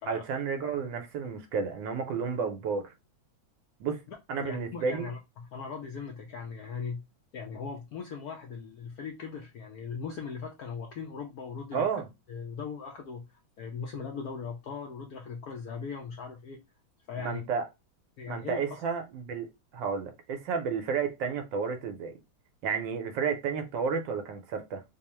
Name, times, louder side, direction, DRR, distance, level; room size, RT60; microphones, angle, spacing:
voice 1, 0.1-2.9 3.8-4.0 4.3-5.1 11.7-12.1 17.1-17.6 18.3-22.1 22.6-24.8, right 6 dB, 75° right, 1.3 m, -32 dB
voice 2, 4.1-7.0 7.3-11.9 12.3-16.6 17.1-17.4 18.2-18.8, left 5 dB, 70° left, 0.9 m, -39 dB
3.6 x 2.0 x 4.1 m
omnidirectional pair, 2.2 m